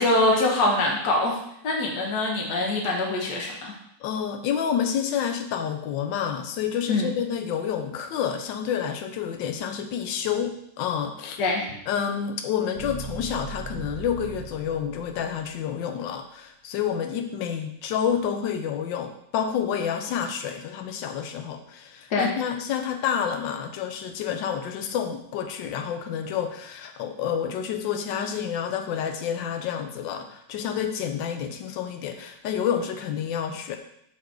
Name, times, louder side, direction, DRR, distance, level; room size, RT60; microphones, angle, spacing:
voice 1, 0.0-1.4 1.6-3.7 6.9-7.1 11.4-11.7 22.1-22.3, left 2 dB, 65° left, -1 dB, 1.6 m, -23 dB
voice 2, 4.0-11.4 11.9-33.8, left 8 dB, 85° left, 6 dB, 1.3 m, -29 dB
sound 1, 11.6-15.6, right 4 dB, 60° right, 1.9 m, -40 dB
5.8 x 4.3 x 4.7 m, 0.75 s
omnidirectional pair, 2.0 m